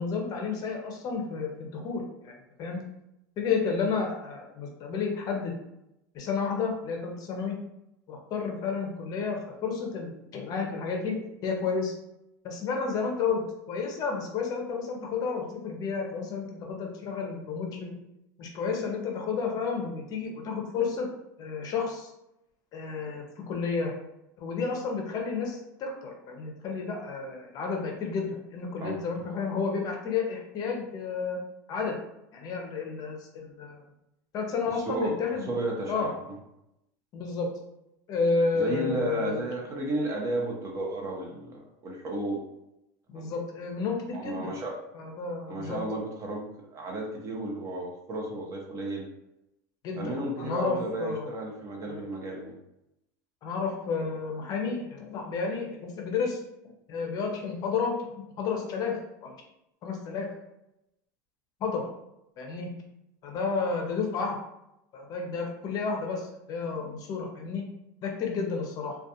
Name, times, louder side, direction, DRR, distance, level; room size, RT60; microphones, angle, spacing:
voice 1, 0.0-2.3 2.6-2.8 3.4-5.5 6.1-7.6 8.1-11.9 12.4-18.0 18.4-21.1 21.4-22.1 22.7-23.9 24.4-31.4 31.7-32.0 32.3-33.8 34.3-35.5 35.9-36.1 37.1-37.5 38.1-39.4 43.1-44.5 44.9-45.8 49.8-51.3 51.9-52.0 53.4-56.4 56.9-59.4 59.8-60.3 61.6-61.9 62.4-62.7 63.2-64.4 64.9-67.6 68.0-69.0, left 5 dB, 40° left, 1 dB, 0.5 m, -31 dB
voice 2, 35.5-36.1 38.5-42.4 43.1-43.2 44.1-44.8 45.5-49.1 50.0-52.6, right 2 dB, 30° right, 0 dB, 0.6 m, -33 dB
2.3 x 2.2 x 2.7 m, 0.86 s
supercardioid pair, 135°, 10 cm